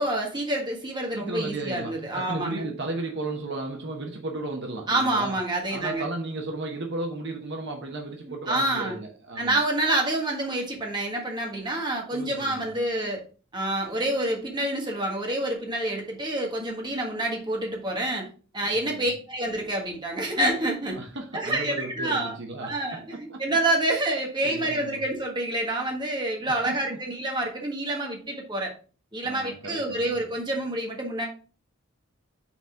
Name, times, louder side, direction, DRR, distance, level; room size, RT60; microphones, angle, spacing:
voice 1, 0.0-2.7 4.9-6.1 8.2-9.0 9.4-13.2 13.5-18.3 18.5-21.0 21.3-22.4 22.6-28.7 29.1-31.3, right 1 dB, 20° right, 1.5 m, -27 dB
voice 2, 1.1-5.3 5.7-9.6 12.1-12.7 18.6-19.1 21.0-23.4 24.4-25.0 26.4-27.0 29.2-30.1, right 2 dB, 55° right, 1.0 m, -35 dB
5.9 x 4.1 x 4.5 m
head